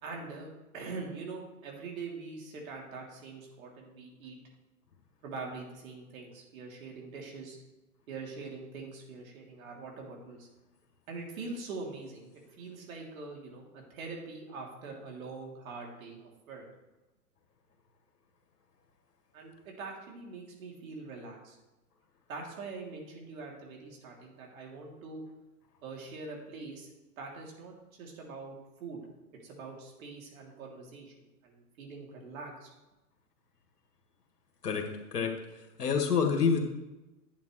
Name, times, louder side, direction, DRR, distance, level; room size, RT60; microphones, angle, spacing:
voice 1, 0.0-4.4 5.2-7.6 8.1-10.5 11.1-16.6 19.3-21.6 22.3-25.2 25.8-26.9 27.2-29.0 29.4-32.7, right 4 dB, 60° right, -1 dB, 3.1 m, -43 dB
voice 2, 34.6-35.3 35.8-36.6, left 6 dB, 85° left, 3 dB, 2.0 m, -27 dB
11.5 x 8.5 x 3.2 m, 1.0 s
hypercardioid pair, 120°, 46 cm